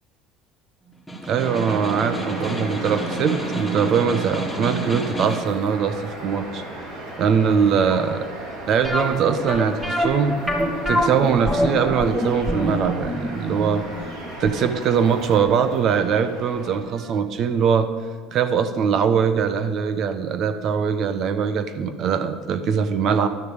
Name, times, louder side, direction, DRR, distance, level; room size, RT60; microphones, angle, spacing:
Snare drum, 0.9-5.6, right 2 dB, 5° left, 2.7 m, -30 dB
voice 1, 1.2-6.8 7.2-8.3 8.7-10.4 10.9-13.8 14.4-17.9 18.3-23.3, right 6 dB, 55° right, 10 dB, 1.2 m, -22 dB
sound 1, 1.4-16.8, right 1 dB, 70° right, 4.5 m, -35 dB
sound 2, 8.8-15.7 16.0-16.1 16.6-16.8 17.1-17.2, equal, 15° right, 2.6 m, -25 dB
12.0 x 6.7 x 9.0 m, 1.5 s
supercardioid pair, 95°, 0 cm